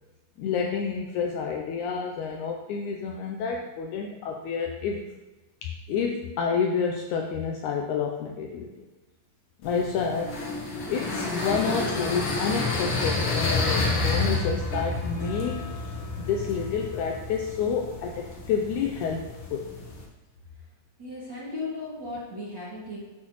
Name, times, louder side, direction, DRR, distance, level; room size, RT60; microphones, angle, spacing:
voice 1, 0.4-5.1 5.6-8.9 9.6-10.4 10.9-15.6 16.2-19.7, left 6 dB, 85° left, 2 dB, 1.7 m, -29 dB
sound 1, 9.6-20.0, left 3 dB, 55° left, 1.7 m, -30 dB
voice 2, 21.0-23.0, left 2 dB, 35° right, -7 dB, 2.3 m, -36 dB
10.0 x 6.3 x 3.0 m, 1.1 s
omnidirectional pair, 4.0 m